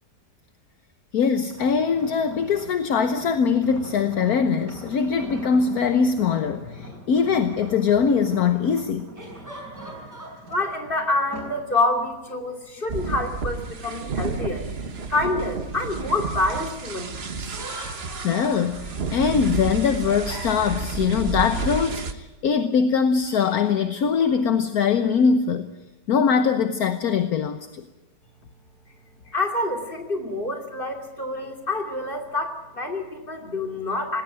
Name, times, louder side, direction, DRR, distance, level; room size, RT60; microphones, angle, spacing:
voice 1, 1.1-9.1 18.2-25.7 26.1-27.8, left 6 dB, 65° left, 9 dB, 1.4 m, -22 dB
sound 1, 1.4-11.7 12.1-12.4, equal, 80° right, 6.5 m, -42 dB
sound 2, 6.0-6.1 9.2-10.7 17.4-19.2 19.4-21.0 23.2-24.5, right 1 dB, 10° right, 6.5 m, -42 dB
voice 2, 10.5-17.4 29.3-34.2, left 2 dB, 30° left, 4 dB, 3.2 m, -27 dB
sound 3, 12.9-22.1, right 4 dB, 40° right, 1.4 m, -31 dB
19.5 x 17.5 x 9.2 m, 1.1 s
omnidirectional pair, 1.8 m